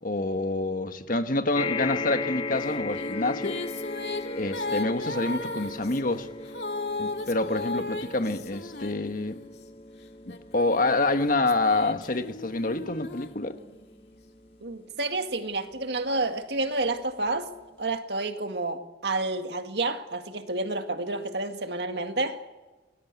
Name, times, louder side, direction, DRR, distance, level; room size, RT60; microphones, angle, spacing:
voice 1, 0.0-3.6 4.3-6.3 7.0-9.4 10.3-13.6, left 2 dB, 50° left, 1.5 m, -27 dB
sound 1, 1.5-16.1 16.9-17.0 17.2-17.3, left 3 dB, 35° left, 1.3 m, -38 dB
sound 2, 2.6-9.6 10.2-14.0, left 3 dB, 65° left, 2.3 m, -36 dB
voice 2, 14.6-17.5 17.8-22.4, right 2 dB, 65° right, 2.0 m, -30 dB
27.0 x 20.0 x 8.3 m
head